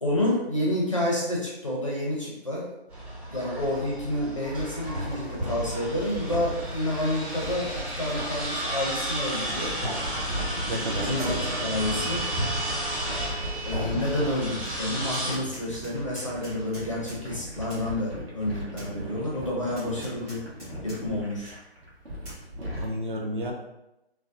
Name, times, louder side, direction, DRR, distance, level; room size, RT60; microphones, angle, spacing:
voice 1, 0.0-2.7 3.3-9.8 10.8-12.2 13.6-20.4 20.8-21.6, left 1 dB, 30° left, -4 dB, 0.4 m, -29 dB
sound 1, 2.9-15.4, right 1 dB, 30° right, 1.1 m, -32 dB
sound 2, 4.4-22.9, equal, 65° right, 1.0 m, -38 dB
voice 2, 10.7-11.4 22.7-23.5, equal, 50° right, 0 dB, 0.5 m, -31 dB
Tap, 14.6-14.8 15.1-17.2 17.7-17.9 18.8-18.9 19.8-21.0 21.4-21.5 22.2-22.4, equal, 15° right, 0.8 m, -46 dB
2.5 x 2.0 x 2.5 m, 0.92 s
figure-of-eight pair, 155°, 33 cm